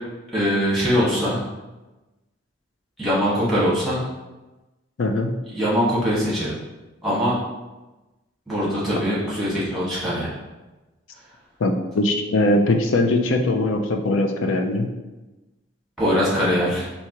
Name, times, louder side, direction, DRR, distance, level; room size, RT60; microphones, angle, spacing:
voice 1, 0.3-1.4 3.0-4.0 5.5-6.5 7.0-7.3 8.5-10.3 16.0-16.9, equal, ahead, -9 dB, 1.5 m, -22 dB
voice 2, 5.0-5.4 11.6-14.9, left 2 dB, 70° left, 4 dB, 0.4 m, -21 dB
4.5 x 2.8 x 2.9 m, 1.1 s
head